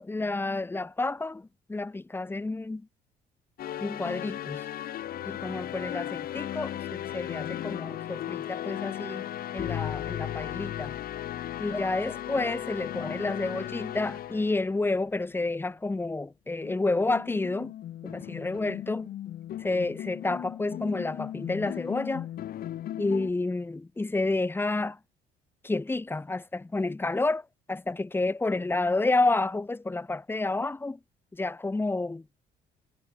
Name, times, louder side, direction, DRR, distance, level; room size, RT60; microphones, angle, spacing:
voice 1, 0.0-2.8 3.8-4.6 5.3-9.2 9.5-11.0 11.6-17.7 18.0-19.1 19.6-22.3 23.0-25.0 25.6-31.0 31.3-32.2, left 2 dB, 15° left, 1.3 m, -30 dB
Fantasy Classical Themes, 3.6-15.2 16.6-23.3, left 12 dB, 60° left, 3.0 m, -36 dB
cardioid pair, 110°, 17 cm